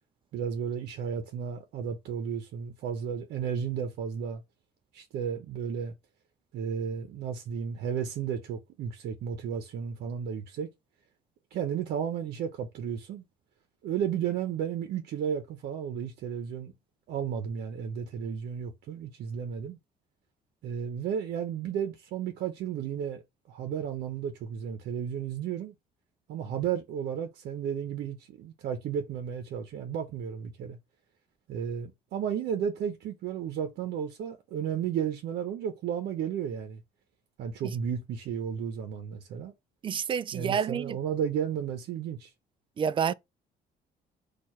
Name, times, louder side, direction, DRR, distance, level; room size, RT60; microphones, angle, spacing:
voice 1, 0.3-4.4 4.9-5.9 6.5-10.7 11.5-13.2 13.8-16.7 17.1-19.8 20.6-23.2 23.5-25.7 26.3-30.8 31.5-36.8 37.4-39.5 40.3-42.3, right 8 dB, 70° right, 0.8 m, -33 dB
voice 2, 39.8-41.0 42.8-43.1, right 7 dB, 30° right, 0.3 m, -28 dB
4.6 x 2.5 x 4.3 m
cardioid pair, 110°, 17 cm